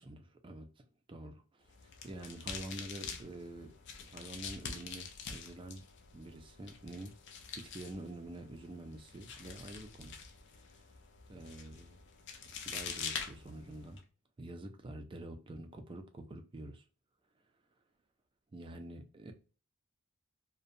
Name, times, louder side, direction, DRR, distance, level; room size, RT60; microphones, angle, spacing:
voice 1, 0.0-1.7 2.0-3.7 4.1-5.8 6.1-7.1 7.6-10.2 11.3-12.0 12.7-14.0 14.4-16.8 18.5-19.3, right 1 dB, 25° right, 0.4 m, -47 dB
sound 1, 1.7-14.0, left 6 dB, 50° left, 0.5 m, -46 dB
2.6 x 2.2 x 2.5 m
head